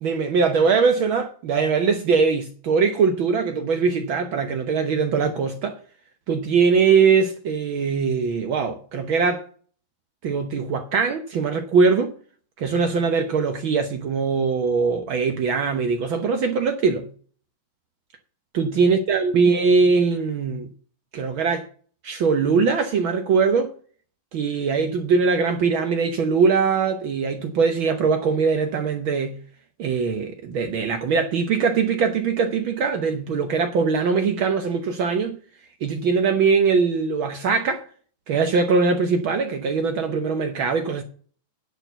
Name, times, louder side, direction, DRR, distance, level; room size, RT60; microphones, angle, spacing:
voice 1, 0.0-5.8 6.3-9.4 10.2-12.1 12.6-17.1 18.5-20.7 21.1-21.7 22.0-23.7 24.3-29.4 29.8-35.4 35.8-37.8 38.3-41.0, right 5 dB, 75° right, 1.1 m, -21 dB
10.5 x 4.5 x 7.9 m
omnidirectional pair, 3.6 m